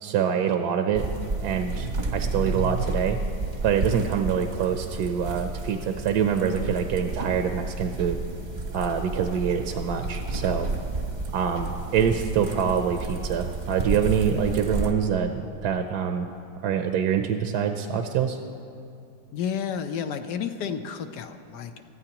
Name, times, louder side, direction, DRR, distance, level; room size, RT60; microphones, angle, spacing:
voice 1, 0.0-1.0 1.4-3.2 3.6-8.2 8.7-10.7 11.3-16.3 16.6-18.4, right 7 dB, 70° right, 5 dB, 1.1 m, -25 dB
sound 1, 0.9-14.9, right 3 dB, 35° right, 0.8 m, -31 dB
voice 2, 19.3-21.8, left 7 dB, 70° left, 8 dB, 1.2 m, -31 dB
21.0 x 14.0 x 2.9 m, 2.5 s
omnidirectional pair, 1.9 m